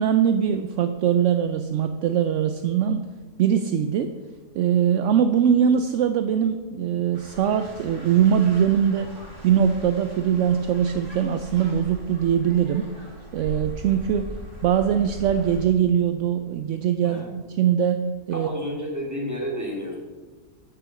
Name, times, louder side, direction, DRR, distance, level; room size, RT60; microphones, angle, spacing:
voice 1, 0.0-3.1 3.4-4.1 4.6-9.1 9.4-12.9 13.3-14.3 14.6-18.0 18.3-18.5, right 8 dB, 70° right, 8 dB, 0.7 m, -22 dB
sound 1, 7.1-15.6, equal, 85° right, 3.5 m, -40 dB
voice 2, 18.3-20.0, equal, 10° right, -3 dB, 2.3 m, -31 dB
8.9 x 6.0 x 7.1 m, 1.4 s
omnidirectional pair, 1.7 m